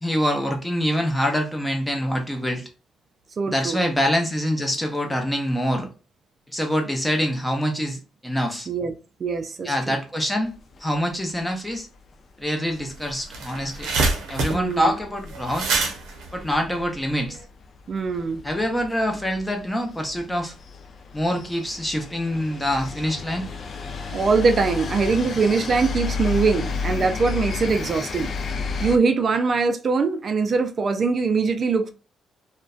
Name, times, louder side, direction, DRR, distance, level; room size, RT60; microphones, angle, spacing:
voice 1, 0.0-2.7 3.5-5.9 6.5-8.7 9.6-10.5 10.8-11.9 12.4-13.9 14.3-15.7 16.3-17.4 18.4-20.5 21.1-23.5, equal, 10° left, 0.7 m, -25 dB
voice 2, 3.4-3.8 8.7-8.9 9.2-10.0 14.5-14.9 17.9-18.4 24.1-28.3 28.8-31.9, right 4 dB, 45° right, 0.3 m, -22 dB
sound 1, 10.5-11.4 11.7-11.8 12.1-12.2 12.4-12.7 13.6-13.8 14.2-14.7 15.2-15.3 15.6-29.0, left 5 dB, 50° left, 0.4 m, -32 dB
sound 2, 12.8-12.9 13.1-17.4, right 3 dB, 85° right, 0.6 m, -26 dB
2.5 x 2.1 x 2.3 m
cardioid pair, 90°, 0 cm